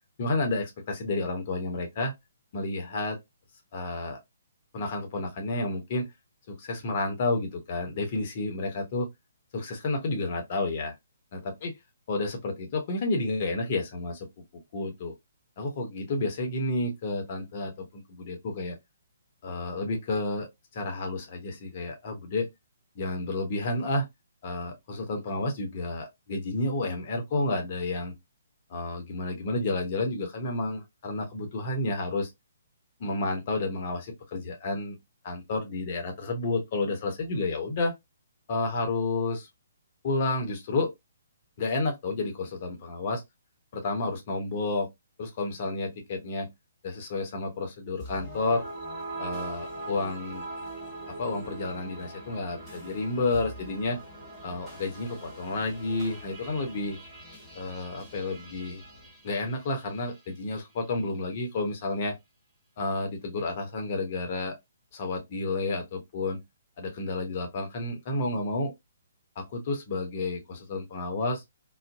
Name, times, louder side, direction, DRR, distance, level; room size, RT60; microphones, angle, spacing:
voice 1, 0.2-2.1 2.5-3.2 3.7-4.2 4.7-6.1 6.5-9.1 9.5-10.9 11.3-11.7 12.1-14.3 14.7-15.1 15.6-18.8 19.4-22.5 23.0-24.1 24.4-28.1 28.7-32.3 33.0-35.0 35.2-37.9 38.5-39.5 40.0-40.9 41.6-43.2 43.7-44.9 45.2-46.5 46.8-48.6 49.2-50.5 51.2-54.0 54.4-57.0 57.5-58.8 59.2-62.1 62.8-64.5 64.9-66.4 66.8-68.7 69.4-71.4, left 2 dB, 40° left, 0.8 m, -30 dB
sound 1, 48.0-60.3, right 2 dB, 5° left, 1.2 m, -42 dB
2.5 x 2.1 x 2.4 m
figure-of-eight pair, 130°, 0 cm